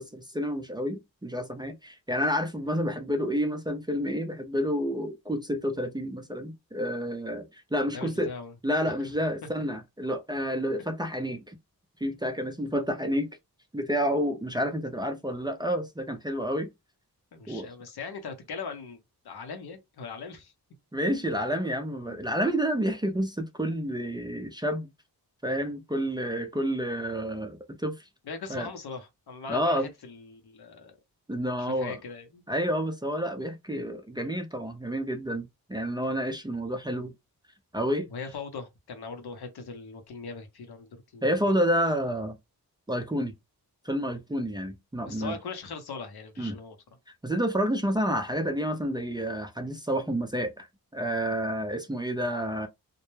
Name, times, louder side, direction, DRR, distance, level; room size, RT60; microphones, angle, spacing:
voice 1, 0.0-8.3 8.6-11.6 12.0-13.3 13.7-16.7 17.5-17.7 20.9-24.9 25.4-28.0 28.5-28.7 29.5-29.9 31.3-32.0 32.5-37.1 37.7-38.3 41.2-42.4 42.9-43.3 43.8-45.4 46.4-46.6 47.2-50.7 50.9-52.7, equal, 10° right, 0.4 m, -29 dB
voice 2, 7.9-8.5 8.8-8.9 17.3-20.5 22.1-22.2 28.2-31.0 31.6-32.4 38.1-41.4 45.0-46.8, left 4 dB, 80° left, 0.8 m, -40 dB
2.2 x 2.1 x 3.0 m
cardioid pair, 70°, 38 cm